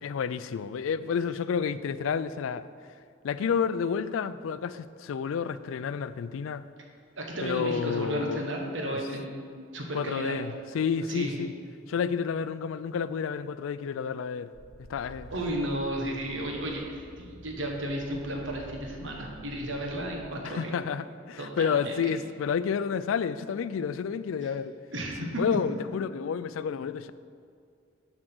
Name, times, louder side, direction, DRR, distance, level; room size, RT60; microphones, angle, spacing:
voice 1, 0.0-2.6 3.2-6.6 7.4-8.5 8.9-9.0 9.9-11.5 11.9-14.5 14.9-15.3 20.4-24.7 25.2-27.1, left 6 dB, 85° left, 14 dB, 0.3 m, -30 dB
voice 2, 7.2-10.4 11.1-11.4 15.3-20.7 21.4-22.0 24.4-24.5 24.9-25.4, right 1 dB, 70° right, 0 dB, 1.3 m, -33 dB
sound 1, 14.5-20.2, right 1 dB, 60° left, 1.1 m, -49 dB
7.7 x 5.0 x 6.1 m, 2.2 s
head